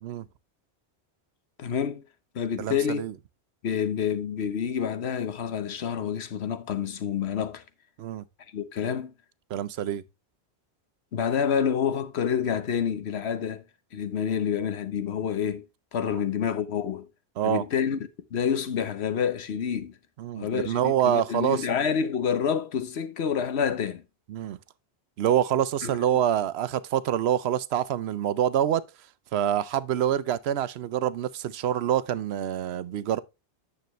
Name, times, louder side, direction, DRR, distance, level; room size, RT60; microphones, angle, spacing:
voice 1, 1.6-2.0 2.3-3.0 3.6-7.6 8.5-9.1 11.1-13.6 13.9-15.6 15.9-17.1 17.4-18.0 18.3-20.0 20.3-24.0 25.8-26.0, left 7 dB, 70° left, 1.1 m, -28 dB
voice 2, 2.6-3.1 8.0-8.2 9.5-10.0 16.1-16.2 17.4-17.6 20.2-21.8 24.3-24.6 25.2-28.8 29.3-33.2, right 10 dB, 70° right, 0.9 m, -26 dB
9.2 x 6.8 x 3.1 m
omnidirectional pair, 1.1 m